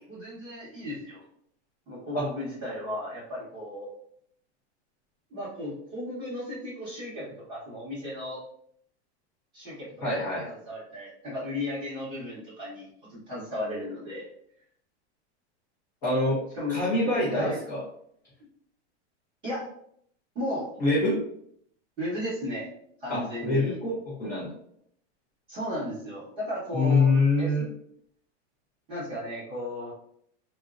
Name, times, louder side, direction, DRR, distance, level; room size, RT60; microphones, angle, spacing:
voice 1, 0.1-1.2 1.9-3.9 5.3-8.4 9.5-14.3 16.5-16.8 17.3-17.6 19.4-19.6 20.3-20.7 22.0-22.7 23.0-23.8 25.5-27.1 27.4-27.5 28.9-29.9, left 1 dB, 15° right, -9 dB, 1.1 m, -35 dB
voice 2, 10.0-10.5 16.0-16.4 16.7-17.8 20.8-21.2 23.1-24.5 26.7-27.7, left 2 dB, 10° left, -13 dB, 0.4 m, -25 dB
3.5 x 2.0 x 2.4 m, 0.67 s
supercardioid pair, 180°, 35 cm